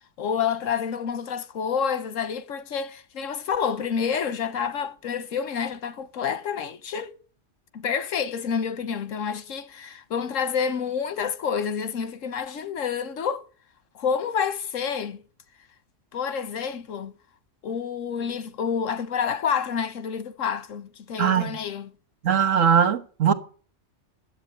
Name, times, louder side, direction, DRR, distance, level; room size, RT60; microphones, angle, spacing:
voice 1, 0.2-7.1 7.7-13.4 13.9-15.2 16.1-17.1 17.6-21.9, left 7 dB, 85° left, 1.4 m, -28 dB
voice 2, 22.2-23.3, right 8 dB, 90° right, 1.7 m, -20 dB
10.5 x 8.0 x 9.1 m
omnidirectional pair, 1.3 m